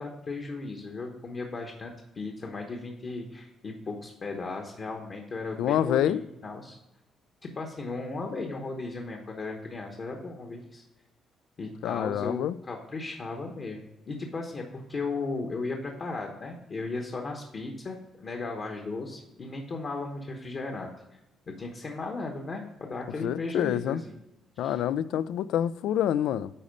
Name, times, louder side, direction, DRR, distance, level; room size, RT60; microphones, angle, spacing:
voice 1, 0.0-6.8 7.5-10.8 11.6-20.9 21.6-24.1 24.6-24.8, left 3 dB, 35° left, 1.0 m, -36 dB
voice 2, 5.6-6.2 11.8-12.6 23.2-24.0 24.6-26.5, left 11 dB, 90° left, 0.3 m, -27 dB
10.0 x 4.2 x 5.2 m
cardioid pair, 155°, 0 cm